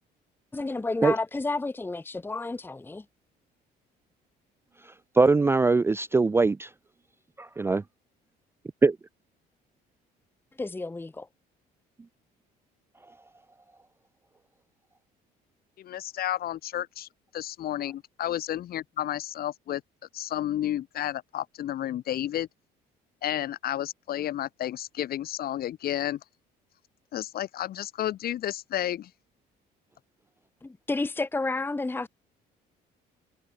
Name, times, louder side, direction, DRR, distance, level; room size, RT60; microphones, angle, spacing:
voice 1, 0.5-3.0 10.6-11.3 30.6-32.1, left 3 dB, 10° left, 1.1 m, -31 dB
voice 2, 5.2-6.7 7.4-7.8 8.8-9.0, right 3 dB, 15° right, 0.4 m, -21 dB
voice 3, 15.8-19.8 20.1-22.5 23.2-26.2 27.1-29.1, left 12 dB, 65° left, 6.3 m, -31 dB
cardioid pair, 110°, 17 cm